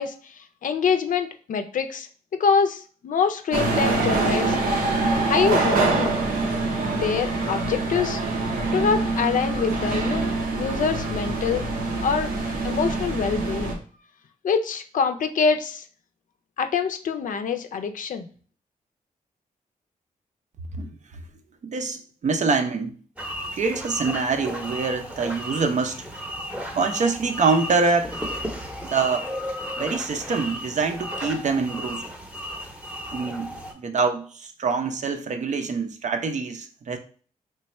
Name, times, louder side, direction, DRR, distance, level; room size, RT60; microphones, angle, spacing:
voice 1, 0.0-4.6 5.2-6.2 6.9-8.2 8.7-11.6 12.0-12.3 12.6-13.8 14.4-15.8 16.6-18.3, left 6 dB, 65° left, 7 dB, 0.5 m, -25 dB
sound 1, 3.5-13.7, right 3 dB, 85° right, 0.8 m, -25 dB
voice 2, 21.6-22.9 23.5-26.0 26.7-28.2 28.8-29.3 29.8-32.0 33.1-37.0, right 4 dB, 55° right, 7 dB, 0.6 m, -25 dB
sound 2, 23.2-33.7, equal, 10° right, 0.8 m, -34 dB
3.3 x 2.2 x 4.2 m, 0.42 s
cardioid pair, 80°, 14 cm